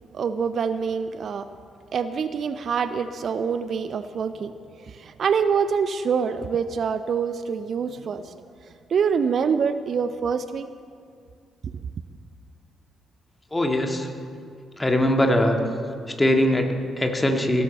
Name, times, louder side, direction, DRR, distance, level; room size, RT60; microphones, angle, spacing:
voice 1, 0.1-1.5 1.9-8.4 8.9-10.7, right 6 dB, 50° right, 12 dB, 0.5 m, -25 dB
voice 2, 13.5-14.1 14.8-15.6 16.2-17.6, left 1 dB, 15° left, 3 dB, 2.0 m, -21 dB
16.0 x 14.0 x 4.4 m, 2.2 s
figure-of-eight pair, 40°, 0 cm